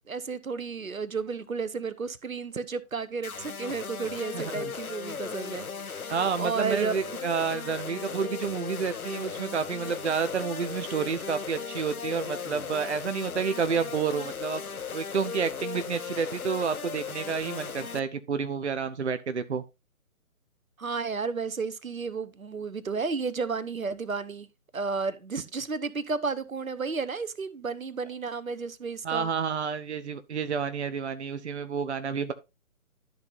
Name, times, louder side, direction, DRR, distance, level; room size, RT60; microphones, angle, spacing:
voice 1, 0.1-7.2 20.8-24.5 24.7-29.3, right 5 dB, 75° right, 1.0 m, -32 dB
sound 1, 3.2-18.0, left 6 dB, 80° left, 0.8 m, -37 dB
voice 2, 4.3-4.7 6.1-14.6 14.9-19.6 29.0-32.3, right 6 dB, 55° right, 0.7 m, -30 dB
13.0 x 5.6 x 2.6 m
figure-of-eight pair, 140°, 42 cm